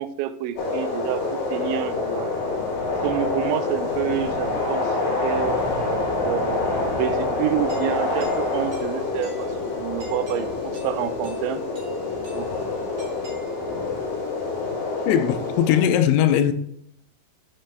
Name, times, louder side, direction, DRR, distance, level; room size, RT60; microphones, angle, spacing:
voice 1, 0.0-2.3 3.0-5.6 6.1-11.6 12.3-12.5, right 12 dB, 90° right, 2.9 m, -29 dB
sound 1, 0.6-15.8, left 3 dB, 55° left, 3.6 m, -26 dB
sound 2, 5.6-10.2, right 5 dB, 75° right, 2.8 m, -42 dB
Doorbell, 7.7-14.0, left 1 dB, 35° right, 2.5 m, -43 dB
voice 2, 15.1-16.5, left 10 dB, 85° left, 2.9 m, -19 dB
7.8 x 6.6 x 3.4 m
omnidirectional pair, 5.2 m